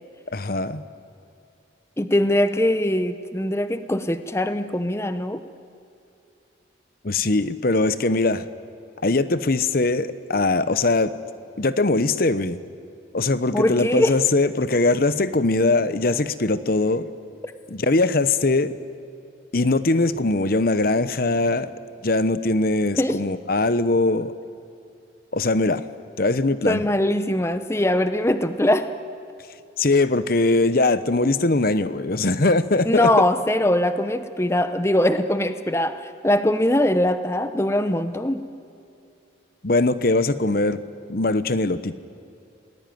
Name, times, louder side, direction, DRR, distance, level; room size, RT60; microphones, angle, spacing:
voice 1, 0.3-0.8 7.0-8.5 9.0-11.1 11.6-12.6 13.1-17.1 17.7-18.7 19.5-21.7 22.0-24.3 25.3-25.8 26.2-26.9 29.8-33.1 39.6-40.8 41.1-42.0, left 2 dB, 50° left, 14 dB, 0.9 m, -21 dB
voice 2, 2.0-5.4 13.5-14.1 23.0-23.2 26.7-28.9 32.8-38.4, left 1 dB, 15° left, 10 dB, 0.8 m, -22 dB
28.5 x 19.5 x 9.4 m, 2.6 s
head